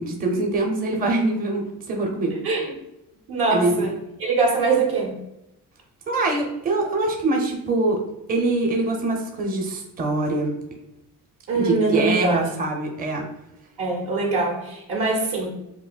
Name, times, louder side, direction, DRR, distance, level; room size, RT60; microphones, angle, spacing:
voice 1, 0.0-2.3 3.5-3.9 6.1-8.0 8.3-10.5 11.5-13.2, right 2 dB, 25° right, 1 dB, 0.6 m, -24 dB
voice 2, 3.3-3.9 4.2-5.2 11.5-12.5 13.8-15.5, right 3 dB, 70° right, -1 dB, 1.2 m, -23 dB
5.9 x 2.0 x 2.3 m, 0.86 s
cardioid pair, 100°, 38 cm